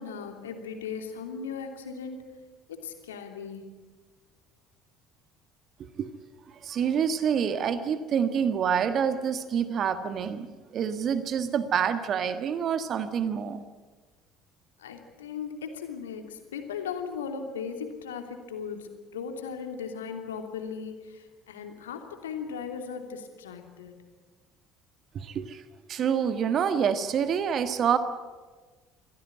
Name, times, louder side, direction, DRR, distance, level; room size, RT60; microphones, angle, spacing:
voice 1, 0.0-2.2 2.7-3.6 14.8-23.9, left 6 dB, 75° left, 5 dB, 2.9 m, -37 dB
voice 2, 6.6-10.5 10.7-13.6 25.1-25.6 25.9-28.0, right 7 dB, 45° right, 11 dB, 1.5 m, -27 dB
25.0 x 16.5 x 9.9 m, 1.3 s
figure-of-eight pair, 55°, 0 cm